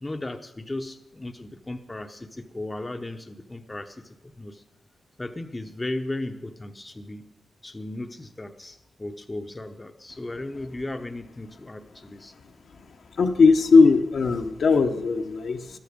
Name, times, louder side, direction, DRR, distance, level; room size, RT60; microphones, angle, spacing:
voice 1, 0.0-4.6 5.2-7.3 7.6-12.3, left 2 dB, 20° left, 6 dB, 0.9 m, -36 dB
voice 2, 13.1-15.8, left 4 dB, 65° left, 5 dB, 1.0 m, -19 dB
13.5 x 12.0 x 5.2 m, 0.90 s
cardioid pair, 80°, 0 cm